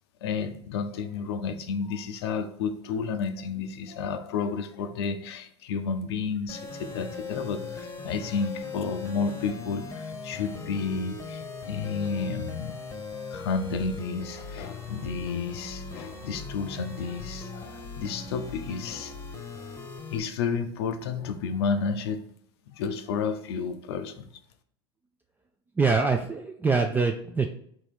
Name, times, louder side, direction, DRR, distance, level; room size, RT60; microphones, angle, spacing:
voice 1, 0.2-12.7 13.3-19.2 20.1-22.2 22.7-24.3, left 5 dB, 65° left, 0.5 m, -31 dB
sound 1, 6.5-20.2, left 3 dB, 20° left, 0.9 m, -39 dB
voice 2, 25.8-27.5, right 4 dB, 15° right, 0.4 m, -24 dB
3.7 x 2.9 x 4.7 m
hypercardioid pair, 85°, 14 cm